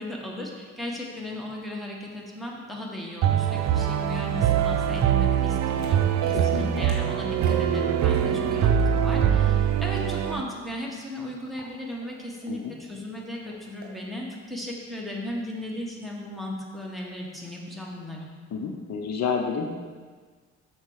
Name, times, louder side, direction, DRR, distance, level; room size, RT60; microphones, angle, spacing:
voice 1, 0.0-18.3, left 1 dB, ahead, -2 dB, 1.5 m, -36 dB
sound 1, 3.2-10.4, right 9 dB, 60° right, 0.6 m, -23 dB
sound 2, 4.7-9.7 10.0-10.1 10.7-12.7 13.3-13.9, right 3 dB, 35° right, 2.0 m, -45 dB
voice 2, 6.3-6.9 12.5-12.8 18.5-19.9, left 6 dB, 60° left, 3 dB, 0.8 m, -30 dB
6.5 x 4.5 x 6.3 m, 1.5 s
cardioid pair, 90°, 30 cm